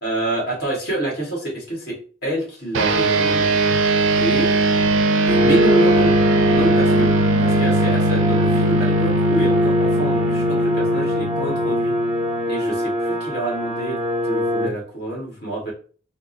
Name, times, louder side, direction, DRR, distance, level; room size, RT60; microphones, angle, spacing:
voice 1, 0.0-3.6 4.1-4.6 5.2-6.2 6.5-7.1 7.4-12.0 12.5-15.7, right 1 dB, 55° left, -2 dB, 1.5 m, -27 dB
sound 1, 2.7-12.5, right 2 dB, 85° right, 0.5 m, -20 dB
sound 2, 5.3-14.7, equal, ahead, 0.4 m, -22 dB
3.5 x 2.0 x 3.9 m, 0.41 s
head